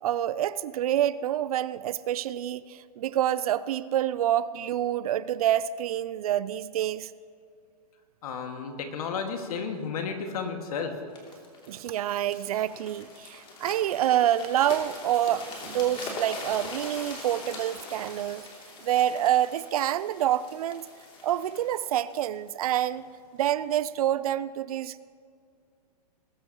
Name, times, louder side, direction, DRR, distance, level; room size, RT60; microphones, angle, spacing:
voice 1, 0.0-7.1 11.7-18.5 18.8-20.9 21.2-23.0 23.4-25.0, right 11 dB, 65° right, 0.5 m, -27 dB
voice 2, 8.2-10.9, left 5 dB, 65° left, 2.1 m, -32 dB
sound 1, 11.2-23.0 23.6-23.8, left 2 dB, 25° left, 2.9 m, -42 dB
21.0 x 12.0 x 3.1 m
hypercardioid pair, 130°, 21 cm